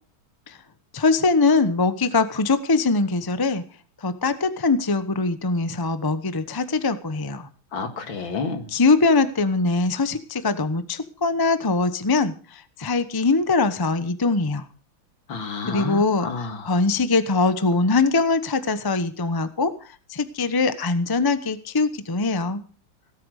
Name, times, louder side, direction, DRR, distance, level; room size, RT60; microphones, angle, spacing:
voice 1, 0.9-3.6 4.0-7.5 8.7-12.3 12.8-14.6 15.7-19.7 20.1-22.6, left 3 dB, 20° left, 12 dB, 0.6 m, -22 dB
voice 2, 7.7-8.7 15.3-16.8, left 4 dB, 75° left, 7 dB, 2.7 m, -30 dB
18.0 x 8.6 x 6.5 m, 0.39 s
omnidirectional pair, 2.2 m